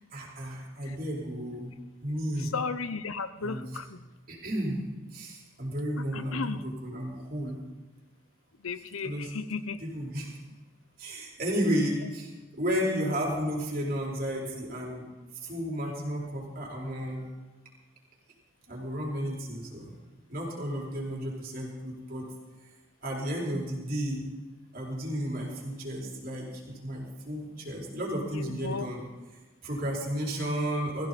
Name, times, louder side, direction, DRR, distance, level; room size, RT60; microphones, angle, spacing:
voice 1, 0.1-1.7 2.0-2.5 3.4-3.8 4.3-4.8 5.1-7.6 9.0-9.3 9.8-10.4 11.0-15.0 15.4-17.3 18.7-19.9 20.3-22.2 23.0-24.2 24.7-29.0 29.6-31.1, equal, 45° right, -3 dB, 4.6 m, -33 dB
voice 2, 2.4-4.0 6.0-6.6 8.6-9.8 28.3-28.9 30.4-30.5, left 4 dB, 90° left, 12 dB, 0.9 m, -35 dB
22.0 x 15.5 x 4.3 m, 1.3 s
head